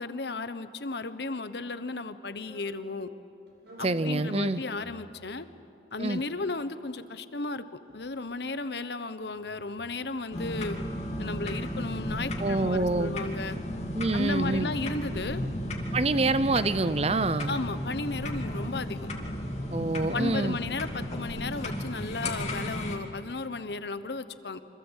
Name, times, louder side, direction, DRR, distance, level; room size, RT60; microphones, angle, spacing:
voice 1, 0.0-3.1 3.8-5.5 5.9-10.8 11.2-13.6 14.1-15.4 17.5-19.1 20.1-24.6, left 3 dB, 65° left, 12 dB, 1.1 m, -34 dB
sound 1, 2.3-2.7 3.5-4.0 4.7-5.2 5.9-6.6 7.4-8.7 9.2-10.2 10.9-11.9 12.6-13.3 14.2-14.9 15.6-16.2 16.9-17.3, equal, 65° right, 6.2 m, -54 dB
voice 2, 3.8-4.6 6.0-6.2 12.4-13.1 13.9-14.7 15.9-17.6 19.7-20.6, right 2 dB, 35° right, 14 dB, 0.7 m, -26 dB
sound 2, 10.3-23.0, equal, 40° left, 2.7 m, -34 dB
27.0 x 25.5 x 8.2 m, 2.7 s
head